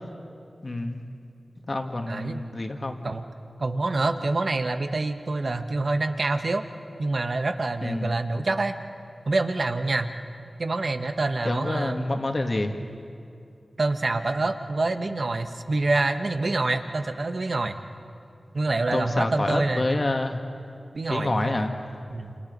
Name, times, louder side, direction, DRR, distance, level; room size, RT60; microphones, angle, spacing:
voice 1, 0.6-1.0 1.7-3.0 7.8-8.1 11.4-12.7 18.9-20.4 21.1-21.7, left 2 dB, 50° left, 4 dB, 2.1 m, -27 dB
voice 2, 2.1-2.4 3.0-3.2 3.6-6.6 7.0-8.8 9.3-10.1 10.6-12.0 12.8-13.0 13.8-17.8 18.5-19.9 20.9-21.7 22.1-22.4, right 2 dB, 60° right, 7 dB, 1.4 m, -26 dB
28.0 x 27.5 x 5.5 m, 2.5 s
cardioid pair, 45°, 0 cm